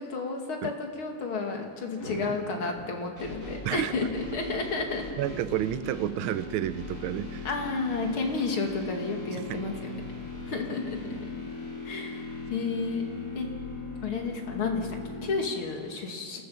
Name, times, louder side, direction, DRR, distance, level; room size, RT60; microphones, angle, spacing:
voice 1, 0.0-5.0 7.4-9.9 10.5-11.3 11.8-13.0 13.3-13.5 14.0-16.4, left 4 dB, 70° left, 2 dB, 3.1 m, -31 dB
Thunder / Rain, 0.9-13.5, left 2 dB, 45° left, 2.8 m, -50 dB
sound 1, 3.2-15.4, left 2 dB, 45° right, 8.4 m, -39 dB
voice 2, 3.6-4.1 5.2-7.5 9.5-9.7, right 12 dB, 75° right, 13 dB, 1.5 m, -30 dB
29.0 x 14.5 x 7.1 m, 2.1 s
omnidirectional pair, 2.4 m